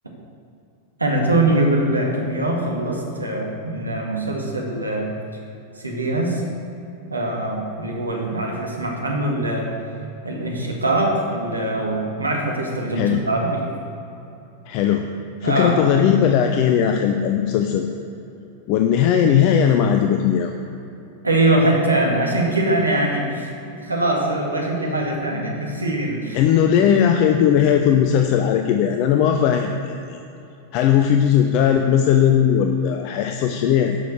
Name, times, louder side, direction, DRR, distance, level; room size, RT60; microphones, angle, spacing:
voice 1, 1.0-5.1 5.8-6.4 7.1-9.7 10.2-13.6 15.4-15.8 21.2-23.5 23.8-26.4, right 2 dB, 80° right, -1 dB, 2.0 m, -22 dB
voice 2, 14.7-15.1 15.4-17.9 18.7-20.5 26.3-30.2 30.7-34.0, left 8 dB, 45° left, 5 dB, 0.6 m, -18 dB
11.0 x 6.4 x 6.4 m, 2.8 s
figure-of-eight pair, 90°, 0 cm